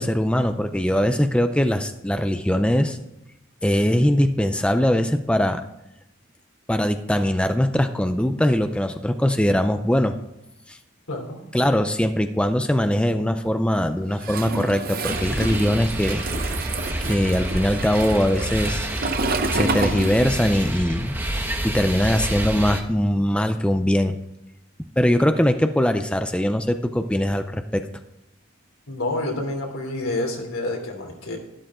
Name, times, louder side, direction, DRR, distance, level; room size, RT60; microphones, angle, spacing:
voice 1, 0.0-3.0 3.6-5.6 6.7-10.2 10.7-10.8 11.5-16.3 17.0-18.9 19.5-21.1 21.6-24.2 25.0-27.8, equal, 5° left, 8 dB, 0.5 m, -21 dB
voice 2, 11.1-11.5 28.9-31.4, left 2 dB, 90° left, 1 dB, 3.2 m, -28 dB
Toilet flush, 14.2-20.7 20.9-22.5, right 3 dB, 45° right, 0.8 m, -30 dB
sound 1, 15.1-22.8, right 1 dB, 10° right, 1.2 m, -28 dB
12.5 x 11.0 x 3.7 m, 0.90 s
head